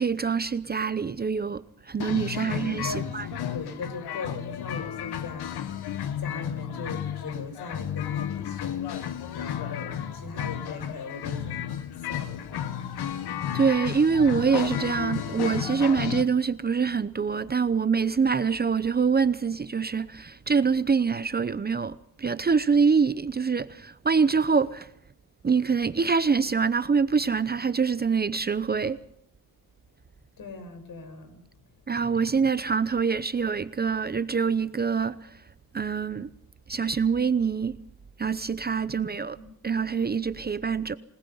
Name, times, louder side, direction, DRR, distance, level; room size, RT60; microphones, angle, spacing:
voice 1, 0.0-3.3 13.5-24.9 25.4-29.0 31.9-35.3 35.7-36.3 36.7-37.8 38.2-39.4 39.6-40.9, right 5 dB, 25° right, 0.7 m, -25 dB
sound 1, 2.0-16.2, left 9 dB, 85° left, 1.6 m, -33 dB
voice 2, 2.3-5.7 6.2-11.7 12.0-12.8 30.4-31.5 38.9-39.5, left 4 dB, 60° left, 5.6 m, -40 dB
27.0 x 19.0 x 5.6 m
cardioid pair, 110°, 38 cm